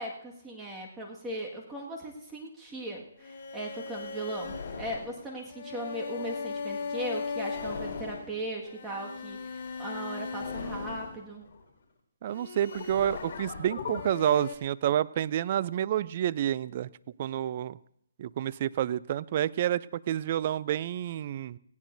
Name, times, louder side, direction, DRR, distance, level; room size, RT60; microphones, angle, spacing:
voice 1, 0.0-11.5, right 1 dB, 10° right, -2 dB, 1.8 m, -38 dB
sound 1, 3.2-11.7 12.2-14.5, left 5 dB, 45° left, 4.6 m, -37 dB
voice 2, 12.2-16.9 17.2-17.8 18.2-21.6, right 11 dB, 40° right, 18 dB, 0.4 m, -29 dB
18.0 x 17.0 x 2.7 m, 0.75 s
hypercardioid pair, 155°, 0 cm